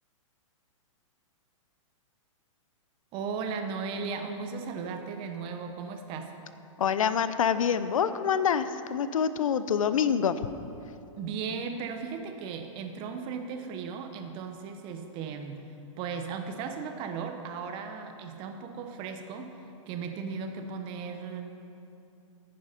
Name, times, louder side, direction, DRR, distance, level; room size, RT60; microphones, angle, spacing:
voice 1, 3.1-6.3 11.2-15.6 16.0-19.6 19.9-21.4, right 5 dB, 30° right, 6 dB, 0.9 m, -36 dB
voice 2, 6.8-10.4, left 7 dB, 85° left, 12 dB, 0.6 m, -26 dB
10.0 x 9.5 x 5.2 m, 2.9 s
hypercardioid pair, 145°, 17 cm